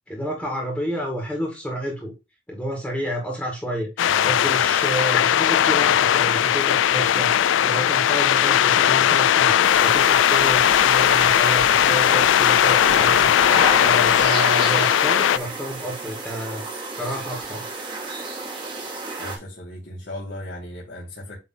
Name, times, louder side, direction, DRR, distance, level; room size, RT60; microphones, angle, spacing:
voice 1, 0.1-2.1 2.5-16.7 16.9-17.6, right 1 dB, 5° left, 1.9 m, -30 dB
sound 1, 4.0-15.4, left 10 dB, 85° left, 0.3 m, -18 dB
voice 2, 4.0-4.7 19.2-21.4, left 1 dB, 65° left, 2.2 m, -36 dB
sound 2, 9.6-19.4, right 3 dB, 25° right, 2.1 m, -31 dB
8.6 x 3.4 x 3.8 m
head